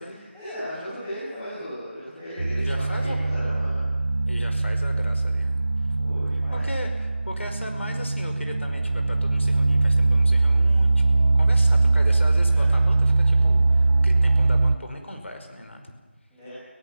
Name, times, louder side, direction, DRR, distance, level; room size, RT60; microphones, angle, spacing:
voice 1, 0.0-3.9 6.0-6.6 12.5-12.7 16.3-16.5, equal, 10° left, -13 dB, 7.7 m, -37 dB
sound 1, 2.4-14.8, right 3 dB, 65° right, 1.2 m, -21 dB
voice 2, 2.6-3.2 4.3-5.9 6.5-15.8, left 1 dB, 80° left, 5 dB, 5.3 m, -38 dB
23.5 x 18.0 x 7.3 m, 1.3 s
figure-of-eight pair, 175°, 6 cm